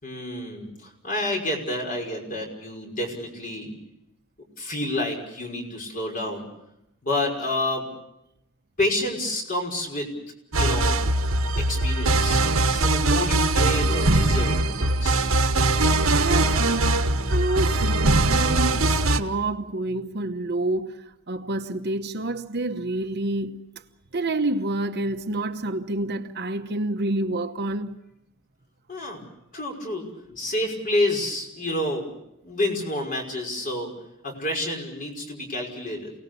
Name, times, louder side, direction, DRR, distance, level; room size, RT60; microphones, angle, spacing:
voice 1, 0.0-3.7 4.6-6.4 7.0-7.9 8.8-10.1 10.5-11.0 11.6-15.3 28.9-29.2 29.5-32.1 32.4-33.9 34.2-36.1, left 1 dB, 40° left, 5.6 m, -29 dB
sound 1, 10.5-19.2, right 2 dB, 75° right, 1.3 m, -21 dB
voice 2, 16.2-23.6 24.1-28.0, right 2 dB, 50° right, 1.1 m, -28 dB
28.5 x 19.0 x 6.9 m
head